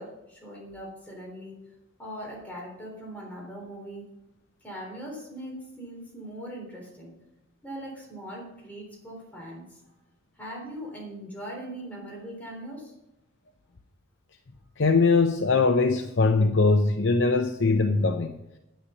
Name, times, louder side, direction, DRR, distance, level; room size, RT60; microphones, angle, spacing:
voice 1, 0.0-1.6 2.0-4.1 4.6-7.2 7.6-9.8 10.3-12.9, equal, 10° left, -3 dB, 3.7 m, -40 dB
voice 2, 14.8-18.4, left 3 dB, 60° left, 5 dB, 0.7 m, -21 dB
9.8 x 9.3 x 5.5 m, 0.91 s
head